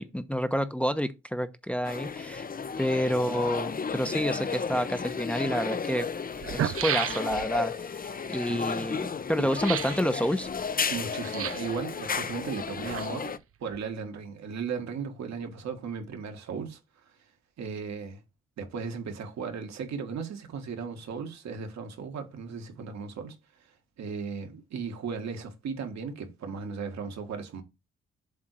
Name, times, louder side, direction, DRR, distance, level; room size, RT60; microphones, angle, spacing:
voice 1, 0.0-2.5 2.8-6.1 6.5-10.5, equal, 5° left, 0.9 m, -29 dB
sound 1, 1.8-13.4, left 5 dB, 30° left, 0.7 m, -33 dB
sound 2, 5.1-5.2 6.0-6.1 6.3-7.6 9.5-10.0 11.2-11.8 12.6-13.4 13.7-13.8, right 10 dB, 50° right, 0.7 m, -32 dB
voice 2, 10.9-13.4 13.6-16.8 17.6-18.2 18.6-23.4 24.0-27.6, right 5 dB, 65° right, 1.8 m, -36 dB
7.5 x 3.7 x 4.6 m
hypercardioid pair, 45°, 30 cm